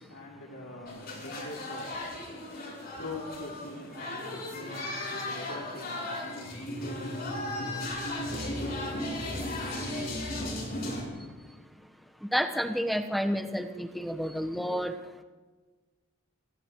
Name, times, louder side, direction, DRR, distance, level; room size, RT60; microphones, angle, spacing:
voice 1, 0.0-8.7, left 2 dB, 85° left, 3.2 m, -44 dB
sound 1, 0.9-11.0, left 1 dB, 45° left, 7.7 m, -36 dB
voice 2, 11.2-11.9 12.2-15.2, equal, ahead, 1.1 m, -31 dB
30.0 x 28.0 x 3.1 m
head